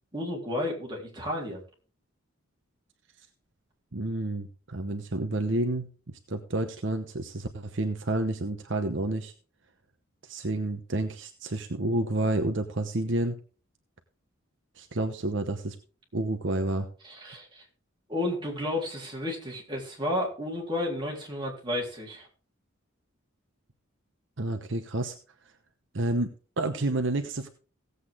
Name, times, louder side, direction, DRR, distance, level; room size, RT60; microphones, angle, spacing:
voice 1, 0.1-1.6 17.0-17.7 18.1-22.3, left 1 dB, 20° right, -2 dB, 3.7 m, -32 dB
voice 2, 3.9-9.3 10.2-13.4 14.8-15.8 16.1-16.9 24.4-25.2 25.9-27.5, right 2 dB, 60° right, 7 dB, 0.9 m, -30 dB
16.5 x 8.2 x 3.6 m, 0.37 s
head